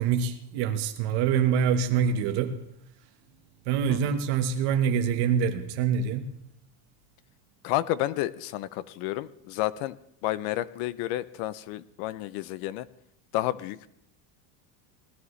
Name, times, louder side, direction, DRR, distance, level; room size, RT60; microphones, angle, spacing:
voice 1, 0.0-2.6 3.6-6.3, right 7 dB, 55° right, 1.3 m, -25 dB
voice 2, 7.6-10.0 10.2-12.9 13.3-13.9, left 15 dB, 50° left, 0.5 m, -30 dB
19.0 x 12.0 x 3.2 m
cardioid pair, 175°, 47 cm